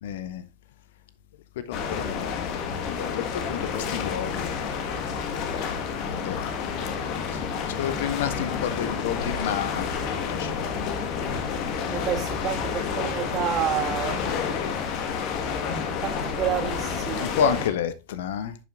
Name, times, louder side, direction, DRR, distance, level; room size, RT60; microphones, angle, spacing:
voice 1, 0.0-0.4 1.7-3.2 3.5-4.6 6.2-6.8 7.3-7.4 7.7-9.9 10.3-10.5 14.2-14.5 17.2-18.6, left 9 dB, 55° left, 0.7 m, -30 dB
sound 1, 1.7-17.7, left 6 dB, 40° left, 1.5 m, -29 dB
voice 2, 11.9-14.2 16.0-17.6, right 9 dB, 30° right, 2.5 m, -29 dB
10.5 x 7.5 x 2.5 m
figure-of-eight pair, 90°, 0 cm